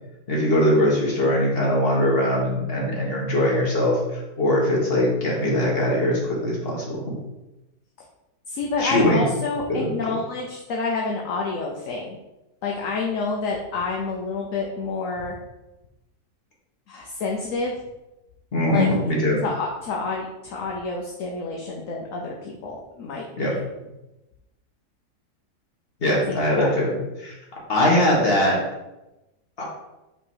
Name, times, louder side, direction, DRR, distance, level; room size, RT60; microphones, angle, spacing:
voice 1, 0.3-4.0 4.4-7.1 8.8-9.3 9.7-9.9 18.5-19.4 23.4-23.5 26.0-27.3 27.7-28.6 29.6-29.7, left 1 dB, 35° left, -4 dB, 1.7 m, -21 dB
voice 2, 8.5-12.2 12.6-15.4 16.9-17.7 18.7-18.9 19.4-23.6 26.1-26.7, left 4 dB, 60° left, -1 dB, 1.0 m, -28 dB
5.6 x 3.1 x 5.5 m, 0.99 s
omnidirectional pair, 1.8 m